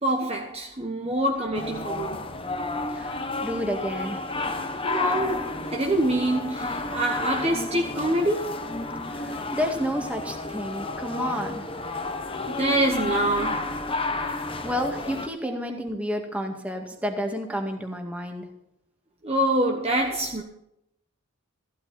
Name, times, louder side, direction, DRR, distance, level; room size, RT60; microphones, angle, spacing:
voice 1, 0.0-2.2 4.8-8.6 12.5-13.7 15.4-15.5 19.2-20.4, right 1 dB, 25° right, 1.2 m, -25 dB
Ranting Guy With Saxophone, 1.5-15.3, left 2 dB, 25° left, 1.1 m, -31 dB
voice 2, 2.9-4.3 9.1-11.6 14.2-18.5, equal, 5° right, 2.0 m, -31 dB
15.0 x 12.5 x 4.3 m
head